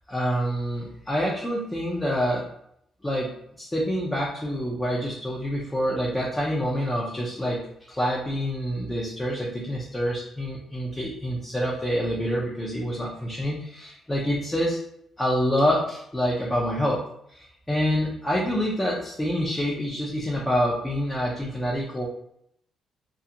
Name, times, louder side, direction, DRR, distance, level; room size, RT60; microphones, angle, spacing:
voice 1, 0.1-2.5 3.0-14.8 15.2-22.1, equal, 15° left, -4 dB, 0.6 m, -27 dB
2.4 x 2.4 x 2.8 m, 0.72 s
cardioid pair, 90°, 0 cm